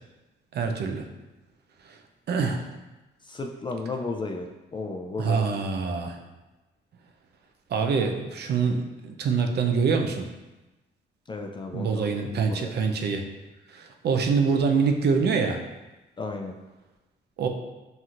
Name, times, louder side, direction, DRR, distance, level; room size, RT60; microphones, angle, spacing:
voice 1, 0.5-1.0 2.3-2.6 5.2-6.2 7.7-10.2 11.7-13.2 13.7-15.6 17.4-17.5, right 5 dB, 55° right, 4 dB, 0.6 m, -25 dB
voice 2, 3.2-5.4 11.3-12.7 16.2-16.6, left 3 dB, 25° left, 3 dB, 0.4 m, -34 dB
5.9 x 2.7 x 2.5 m, 1.1 s
cardioid pair, 90°, 20 cm